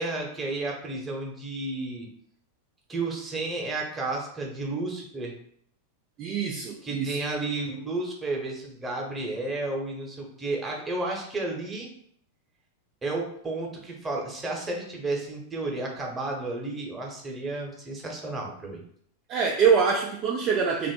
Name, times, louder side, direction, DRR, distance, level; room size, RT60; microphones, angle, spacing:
voice 1, 0.0-2.1 2.9-5.4 6.8-11.9 13.0-18.8, right 2 dB, 15° right, 0 dB, 1.0 m, -32 dB
voice 2, 6.2-7.2 19.3-20.9, right 6 dB, 35° right, 1 dB, 0.4 m, -24 dB
3.0 x 2.5 x 4.4 m, 0.65 s
figure-of-eight pair, 90°, 0 cm